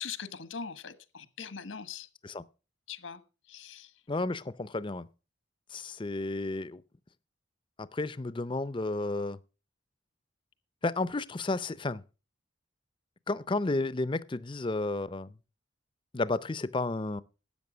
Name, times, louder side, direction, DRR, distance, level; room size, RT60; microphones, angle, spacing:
voice 1, 0.0-2.1 2.9-3.2 3.5-3.9, left 6 dB, 85° left, 1.3 m, -41 dB
voice 2, 4.1-5.1 5.7-6.8 7.9-9.4 10.8-12.0 13.3-15.3 16.1-17.2, left 2 dB, 25° left, 0.5 m, -32 dB
12.5 x 8.5 x 6.1 m
head